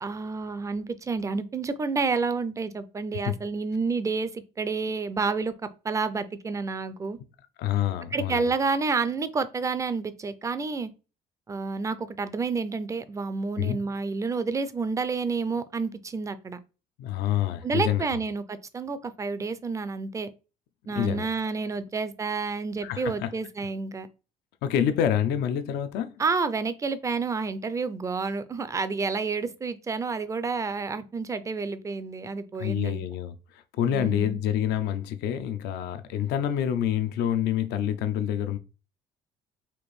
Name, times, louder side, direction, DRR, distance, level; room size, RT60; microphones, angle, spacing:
voice 1, 0.0-7.2 8.1-10.9 11.5-16.6 17.6-20.3 20.9-24.1 26.2-33.0 33.9-34.4, right 4 dB, 20° right, 0.4 m, -29 dB
voice 2, 7.6-8.5 13.6-13.8 17.0-18.2 21.0-21.3 22.8-23.3 24.6-26.1 32.6-38.6, left 10 dB, 75° left, 0.4 m, -27 dB
4.3 x 2.5 x 3.1 m
cardioid pair, 110°, 17 cm